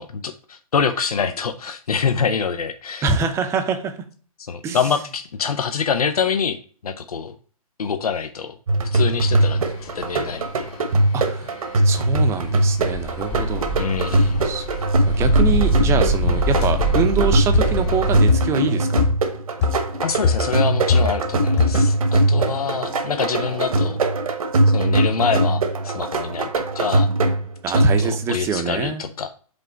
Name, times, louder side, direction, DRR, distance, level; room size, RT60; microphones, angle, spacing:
voice 1, 0.0-3.1 4.4-6.6 6.8-7.4 7.8-8.5 8.9-10.7 13.8-14.4 20.0-24.0 24.7-27.1 27.7-29.3, left 6 dB, 75° left, 8 dB, 0.6 m, -25 dB
voice 2, 3.0-4.0 4.6-4.8 11.1-11.5 11.8-13.7 14.1-14.7 15.0-19.0 22.4-22.5 27.6-29.0, right 5 dB, 15° right, 8 dB, 0.6 m, -25 dB
sound 1, 8.7-28.3, right 2 dB, 70° right, 1.1 m, -21 dB
sound 2, 9.2-18.3, equal, 30° left, 1.1 m, -24 dB
sound 3, 16.6-16.8 17.5-17.8 18.3-18.6 19.0-19.3 19.6-19.9 20.2-21.3 21.6-22.0, left 5 dB, 45° left, 2.3 m, -21 dB
5.3 x 4.0 x 4.5 m, 0.42 s
hypercardioid pair, 130°, 19 cm